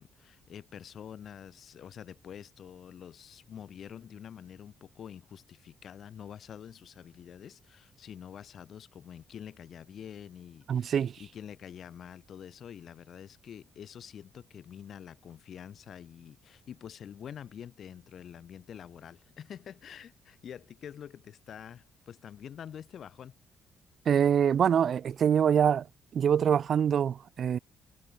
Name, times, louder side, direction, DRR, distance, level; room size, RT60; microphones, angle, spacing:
voice 1, 0.0-23.4, left 9 dB, 60° left, 4.1 m, -47 dB
voice 2, 10.7-11.2 24.1-25.9 26.1-27.6, right 8 dB, 55° right, 0.7 m, -25 dB
cardioid pair, 90°, 0 cm